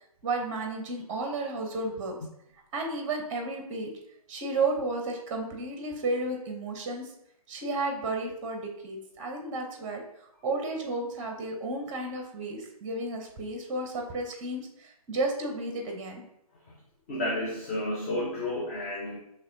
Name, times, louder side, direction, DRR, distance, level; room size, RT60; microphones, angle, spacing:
voice 1, 0.2-2.2 2.7-3.9 4.3-7.1 7.5-10.0 10.4-16.2, right 2 dB, 20° right, 3 dB, 0.7 m, -32 dB
voice 2, 17.1-19.2, left 1 dB, 25° left, -3 dB, 0.6 m, -31 dB
5.7 x 3.1 x 2.6 m, 0.78 s
figure-of-eight pair, 140°, 19 cm